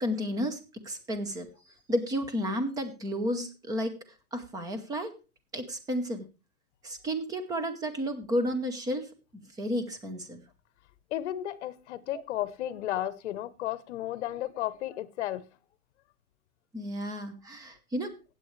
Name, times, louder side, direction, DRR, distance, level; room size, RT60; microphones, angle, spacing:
voice 1, 0.0-1.5 1.9-3.9 4.3-5.1 5.5-6.3 6.8-10.4 12.1-12.2 12.6-12.7 16.7-18.1, equal, 10° right, 0.9 m, -32 dB
voice 2, 11.1-15.4, left 13 dB, 50° left, 1.0 m, -33 dB
16.0 x 8.5 x 3.2 m
hypercardioid pair, 160°, 44 cm